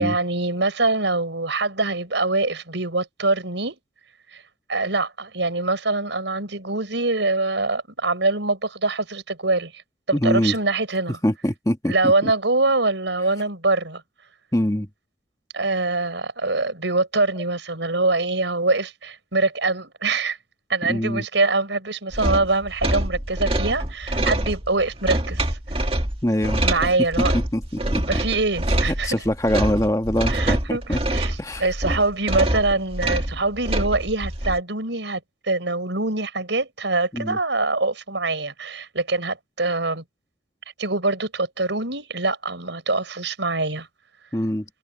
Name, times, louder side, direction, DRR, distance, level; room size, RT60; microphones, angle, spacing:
voice 1, 0.0-3.8 4.3-4.4 4.7-9.8 10.1-11.2 11.8-14.0 15.5-20.4 20.7-25.6 26.6-27.3 28.0-29.1 30.3-30.8 31.1-40.0 40.8-43.9, right 3 dB, 75° right, 5.0 m, -24 dB
voice 2, 10.1-10.5 11.2-12.1 14.5-14.9 20.9-21.2 26.2-26.6 27.3-28.2 28.9-31.0 31.4-31.7 37.1-37.4 44.3-44.6, left 1 dB, 15° left, 1.4 m, -23 dB
sound 1, 22.1-34.6, right 1 dB, 30° right, 2.1 m, -25 dB
head